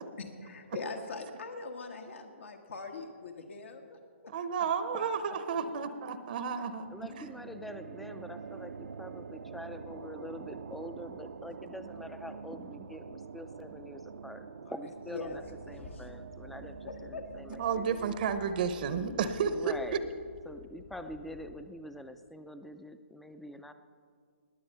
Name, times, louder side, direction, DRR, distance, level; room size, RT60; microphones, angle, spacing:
voice 1, 0.2-4.0 4.2-4.3 15.1-15.4 15.9-16.0 16.9-17.6 20.0-20.1 21.0-21.1, left 4 dB, 75° left, 4 dB, 1.3 m, -42 dB
voice 2, 4.3-7.2 17.5-19.7, right 6 dB, 45° right, 11 dB, 0.7 m, -32 dB
sound 1, 6.8-20.2, right 5 dB, 80° right, 0.6 m, -46 dB
voice 3, 6.9-15.4 15.7-18.2 19.4-20.1 20.5-23.7, left 1 dB, ahead, 10 dB, 0.4 m, -45 dB
sound 2, 15.3-21.6, left 5 dB, 45° left, 1.0 m, -53 dB
20.0 x 7.6 x 5.6 m, 2.1 s
hypercardioid pair, 155°, 7 cm